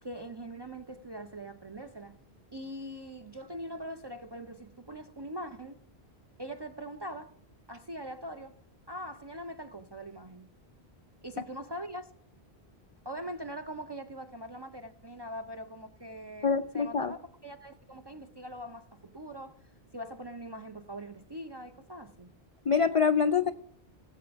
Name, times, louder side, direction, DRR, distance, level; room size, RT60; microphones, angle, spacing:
voice 1, 0.0-2.2 2.5-5.8 6.4-7.3 7.7-8.5 8.9-10.5 11.2-12.1 13.0-16.5 16.7-19.6 19.9-22.3, equal, 35° right, 0.4 m, -42 dB
voice 2, 16.4-17.1 22.7-23.5, left 6 dB, 55° left, 0.3 m, -25 dB
18.0 x 7.8 x 3.4 m
omnidirectional pair, 1.1 m